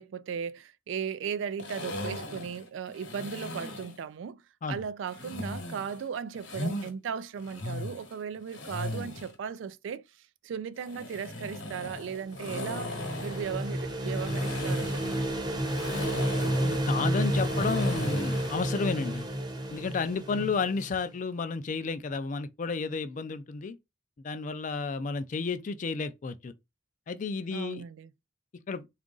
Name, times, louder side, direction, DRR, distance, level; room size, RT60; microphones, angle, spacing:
voice 1, 0.0-4.4 4.7-10.0 10.4-15.3 20.3-20.5 27.5-28.1, right 7 dB, 70° right, 0.3 m, -37 dB
sound 1, 1.6-4.0 5.1-6.9 7.4-9.4 10.8-18.7, left 1 dB, 70° left, 1.0 m, -38 dB
sound 2, 12.1-20.9, right 1 dB, 20° right, 0.7 m, -31 dB
voice 2, 16.6-19.3 19.7-23.8 24.2-26.5 27.1-27.8 28.7-28.9, left 4 dB, 40° left, 0.4 m, -32 dB
3.7 x 2.4 x 3.8 m
head